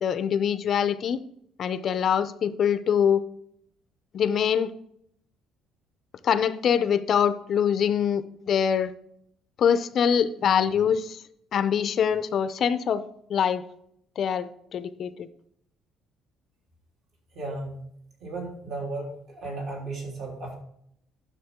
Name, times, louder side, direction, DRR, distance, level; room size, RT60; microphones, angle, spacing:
voice 1, 0.0-1.2 1.6-3.2 4.1-4.7 6.2-8.9 9.6-11.2 11.5-13.0 13.3-13.6 14.2-15.3, left 8 dB, 40° left, 12 dB, 0.5 m, -24 dB
voice 2, 17.3-17.8 18.2-20.6, right 2 dB, 55° right, -2 dB, 3.4 m, -35 dB
10.5 x 6.4 x 3.6 m, 0.71 s
cardioid pair, 165°, 0 cm